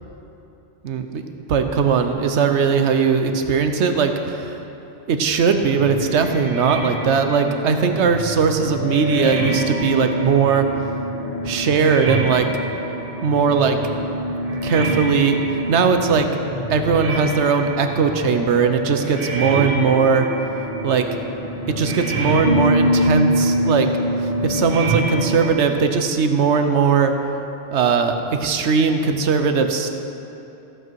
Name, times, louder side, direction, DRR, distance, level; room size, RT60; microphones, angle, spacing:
voice 1, 0.8-1.2 1.5-4.6 5.1-10.7 11.4-12.5 12.8-13.8 14.6-15.4 15.7-16.3 16.7-20.3 20.8-21.1 21.7-23.9 24.4-27.2 27.7-29.9, right 5 dB, 70° right, 6 dB, 1.1 m, -19 dB
sound 1, 5.6-25.5, equal, 50° right, 2.4 m, -25 dB
14.5 x 8.1 x 4.7 m, 2.9 s
omnidirectional pair, 1.2 m